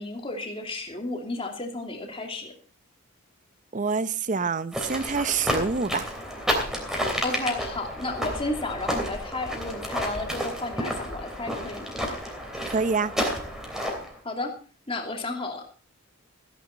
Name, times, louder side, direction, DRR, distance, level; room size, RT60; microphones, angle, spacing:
voice 1, 0.0-2.5 7.2-11.9 14.2-14.5 14.9-15.6, left 2 dB, 25° left, 3 dB, 2.7 m, -32 dB
voice 2, 3.7-6.1 12.7-13.1, right 4 dB, 35° right, 16 dB, 0.6 m, -26 dB
sound 1, 4.7-14.1, equal, ahead, 3.1 m, -31 dB
15.5 x 11.0 x 4.3 m, 0.39 s
head